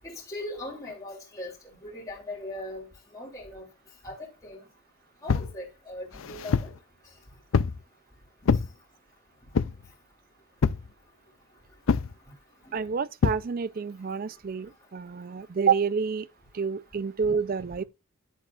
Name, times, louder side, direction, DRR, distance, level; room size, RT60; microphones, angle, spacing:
voice 1, 0.0-1.5 1.8-2.8 3.1-3.6 4.0-4.1 4.4-4.6 5.2-6.7, left 1 dB, 15° left, 2.9 m, -39 dB
sound 1, 5.3-5.5 6.1-6.8 7.5-7.8 8.4-8.7 9.5-9.9 10.6-10.9 11.9-12.1 13.2-13.4, left 5 dB, 70° left, 0.4 m, -25 dB
voice 2, 12.7-16.3 16.5-17.8, right 6 dB, 45° right, 0.4 m, -28 dB
10.0 x 7.4 x 2.4 m
head